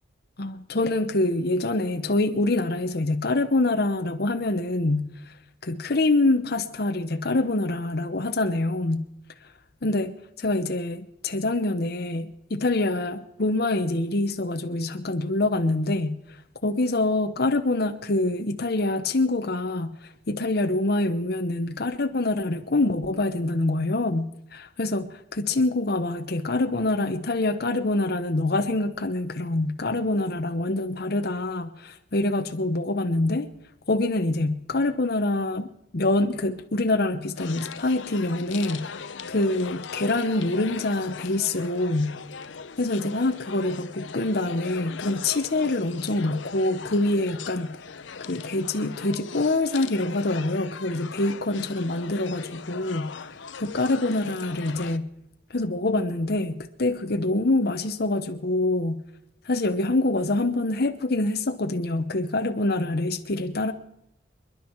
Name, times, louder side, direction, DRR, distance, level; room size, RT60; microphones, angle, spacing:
voice 1, 0.4-5.1 5.6-9.0 9.8-16.2 16.6-19.9 20.3-33.5 33.9-42.1 42.8-47.7 48.2-55.1 55.5-59.0 59.5-63.7, left 2 dB, 55° left, 1.0 m, -25 dB
sound 1, 37.4-55.0, left 6 dB, 80° left, 0.7 m, -39 dB
28.5 x 10.5 x 4.6 m
head